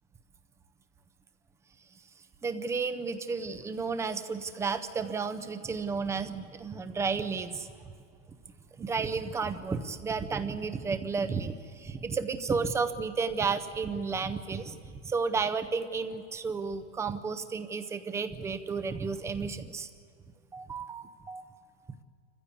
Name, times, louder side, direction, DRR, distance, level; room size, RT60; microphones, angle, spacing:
voice 1, 2.4-7.7 8.8-19.9 20.5-21.4, right 5 dB, 10° right, 10 dB, 0.5 m, -32 dB
26.0 x 15.0 x 8.5 m, 2.4 s
supercardioid pair, 145°, 34 cm